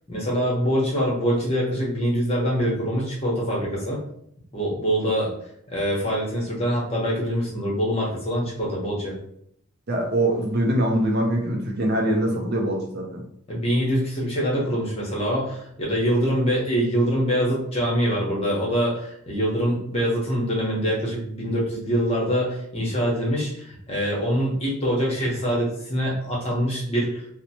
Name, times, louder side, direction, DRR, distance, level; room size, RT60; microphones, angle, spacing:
voice 1, 0.1-4.0 4.5-5.3 5.7-9.2 13.5-27.2, equal, 25° left, -3 dB, 0.9 m, -24 dB
voice 2, 9.9-13.2, right 1 dB, 45° right, 1 dB, 0.4 m, -23 dB
2.8 x 2.0 x 2.8 m, 0.71 s
head